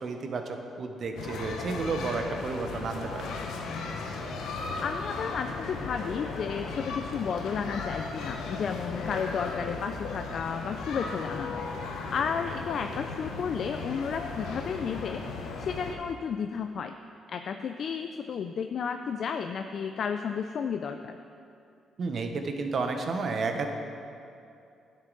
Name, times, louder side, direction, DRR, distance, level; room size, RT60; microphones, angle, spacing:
voice 1, 0.0-3.3 22.0-23.7, right 4 dB, 55° right, 5 dB, 0.8 m, -31 dB
sound 1, 1.2-16.0, left 4 dB, 80° left, 0.8 m, -36 dB
voice 2, 4.8-11.7 12.1-15.2 15.6-16.9 17.3-21.2, left 6 dB, 60° left, 7 dB, 0.3 m, -32 dB
10.5 x 6.4 x 3.9 m, 2.6 s
cardioid pair, 90°, 0 cm